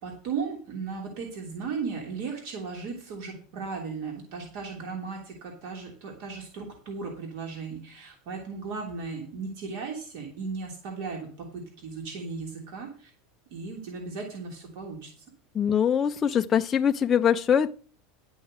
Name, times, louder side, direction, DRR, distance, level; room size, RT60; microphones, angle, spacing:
voice 1, 0.0-13.1 13.5-15.1, right 5 dB, 55° right, 1 dB, 3.0 m, -36 dB
voice 2, 15.5-17.7, left 8 dB, 15° left, 5 dB, 0.4 m, -23 dB
11.5 x 6.3 x 6.4 m, 0.40 s
supercardioid pair, 170°, 0 cm